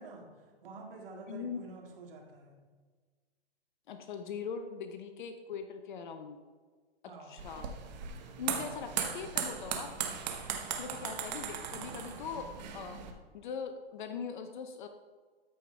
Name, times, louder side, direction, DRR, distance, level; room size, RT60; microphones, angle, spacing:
voice 1, 0.0-2.6 7.1-7.5, right 3 dB, 60° right, 1 dB, 2.2 m, -49 dB
voice 2, 1.3-1.6 3.9-6.4 7.2-7.7 8.4-10.1 10.8-13.1 13.3-14.9, left 6 dB, 50° left, 7 dB, 0.7 m, -41 dB
sound 1, 7.4-13.1, right 8 dB, 45° right, 1.1 m, -38 dB
13.0 x 5.1 x 3.3 m, 1.5 s
hypercardioid pair, 135°, 31 cm